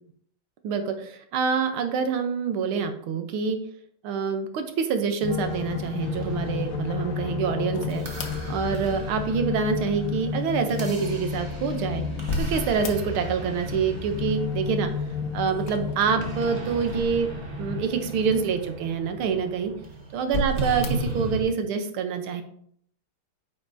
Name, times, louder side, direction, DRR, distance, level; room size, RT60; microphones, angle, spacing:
voice 1, 0.6-3.6 4.0-8.1 8.5-12.1 12.4-14.9 15.3-17.3 17.6-19.7 20.1-22.4, right 6 dB, 80° right, 7 dB, 1.7 m, -26 dB
sound 1, 5.2-18.5, left 6 dB, 85° left, 1.6 m, -32 dB
sound 2, 6.0-21.4, right 2 dB, 35° right, 1.1 m, -37 dB
sound 3, 7.7-9.4 11.2-13.5 13.7-14.4 15.6-17.7 18.3-18.4 19.2-19.8 20.2-21.2, left 1 dB, 65° left, 0.8 m, -35 dB
9.0 x 5.8 x 2.6 m, 0.65 s
omnidirectional pair, 2.3 m